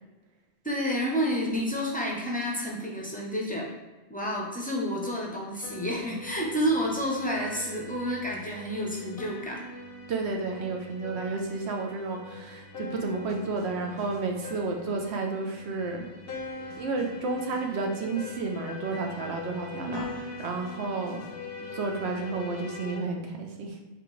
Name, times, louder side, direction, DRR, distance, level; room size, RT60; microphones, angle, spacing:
voice 1, 0.6-3.7 4.1-9.6 19.7-20.1, equal, 10° left, -3 dB, 0.5 m, -30 dB
sound 1, 5.6-23.0, left 3 dB, 65° left, 0.8 m, -42 dB
voice 2, 10.1-16.1 16.8-21.2 21.6-23.8, right 3 dB, 75° right, 2 dB, 0.9 m, -31 dB
4.1 x 2.9 x 3.1 m, 1.2 s
omnidirectional pair, 1.1 m